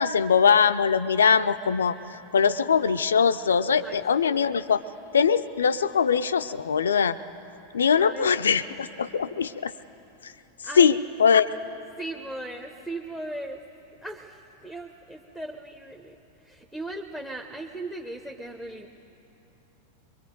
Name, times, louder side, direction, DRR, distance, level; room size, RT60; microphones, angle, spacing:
voice 1, 0.0-2.0 2.3-4.8 5.1-7.2 7.7-9.7 10.2-10.3 10.8-10.9 11.2-11.5, left 6 dB, 70° left, 13 dB, 0.5 m, -21 dB
voice 2, 3.8-4.6 8.0-8.9 10.6-11.0 12.0-13.7 14.0-18.9, right 1 dB, ahead, 7 dB, 0.9 m, -38 dB
23.0 x 23.0 x 5.2 m, 2.9 s
figure-of-eight pair, 90°, 0 cm